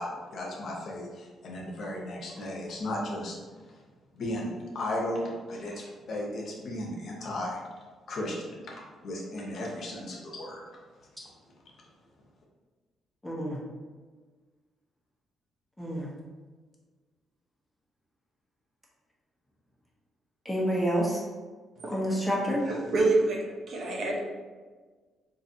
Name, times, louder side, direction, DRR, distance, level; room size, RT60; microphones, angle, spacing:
voice 1, 0.0-3.4 4.1-7.6 8.1-10.6, left 1 dB, 60° left, -2 dB, 0.9 m, -35 dB
voice 2, 13.2-13.6 15.8-16.1 20.4-21.2 21.9-22.6, equal, 5° left, -4 dB, 1.0 m, -28 dB
voice 3, 22.6-24.2, right 2 dB, 60° right, -1 dB, 0.8 m, -27 dB
3.9 x 2.7 x 2.7 m, 1.4 s
cardioid pair, 90°, 0 cm